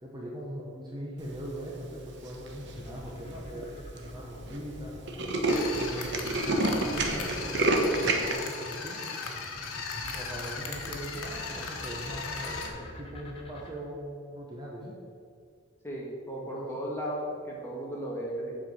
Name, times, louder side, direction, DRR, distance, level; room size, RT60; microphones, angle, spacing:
voice 1, 0.0-5.0 5.7-9.0 10.1-14.9 16.4-16.7, right 1 dB, 20° right, -3 dB, 1.1 m, -40 dB
Tools, 2.3-2.7 3.3-3.4 3.6-3.7 4.0-4.2 4.5-4.6 4.8-8.3, right 2 dB, 55° right, 1.0 m, -28 dB
sound 1, 2.6-13.7, left 1 dB, 25° left, 0.9 m, -47 dB
sound 2, 5.5-12.7, left 4 dB, 90° left, 1.2 m, -37 dB
voice 2, 15.8-18.5, right 1 dB, 10° left, -4 dB, 1.6 m, -35 dB
7.8 x 4.8 x 7.1 m, 2.3 s
head